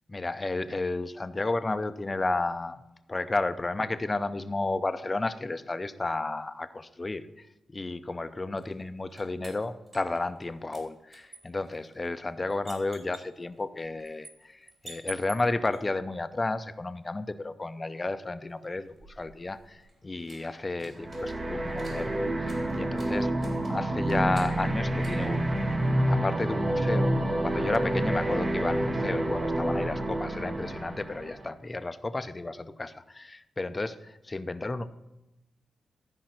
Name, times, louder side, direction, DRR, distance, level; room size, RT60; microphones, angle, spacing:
voice 1, 0.1-2.8 3.1-27.2 27.4-34.9, left 2 dB, 25° left, 11 dB, 0.6 m, -32 dB
sound 1, 8.6-10.5 10.7-15.8 18.6-26.1, right 2 dB, 45° right, 4.4 m, -51 dB
sound 2, 21.0-31.5, right 1 dB, 30° right, 0.9 m, -28 dB
13.0 x 5.3 x 5.9 m, 0.96 s
cardioid pair, 80°, 0 cm